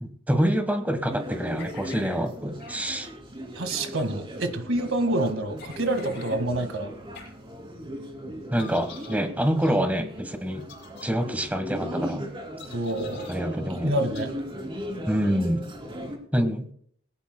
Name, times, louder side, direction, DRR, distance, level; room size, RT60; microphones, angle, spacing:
voice 1, 0.0-3.1 8.5-10.6 11.0-12.3 13.3-14.0 15.1-15.6 16.3-16.7, equal, 10° right, 8 dB, 1.4 m, -26 dB
sound 1, 1.1-16.2, equal, 25° right, 2.9 m, -38 dB
sound 2, 1.6-2.2 2.6-2.8 3.6-4.1 5.6-6.4 7.1-7.3 8.6-9.2 9.6-9.8 10.6-11.0 12.6-13.4 14.1-14.3, left 5 dB, 60° left, 7.1 m, -46 dB
voice 2, 3.6-6.9 12.7-13.3 13.8-14.3, right 1 dB, 90° right, 8 dB, 1.9 m, -27 dB
20.5 x 17.5 x 2.3 m, 0.64 s
head